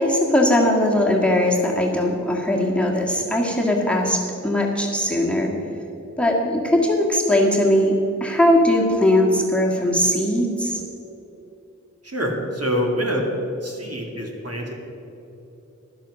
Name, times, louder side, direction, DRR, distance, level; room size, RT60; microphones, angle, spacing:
voice 1, 0.0-5.5 6.2-10.8, left 1 dB, 5° left, 0 dB, 1.9 m, -20 dB
voice 2, 12.0-13.2 13.6-14.7, equal, 50° right, 0 dB, 2.4 m, -25 dB
12.0 x 10.5 x 6.3 m, 3.0 s
wide cardioid pair, 75°, 31 cm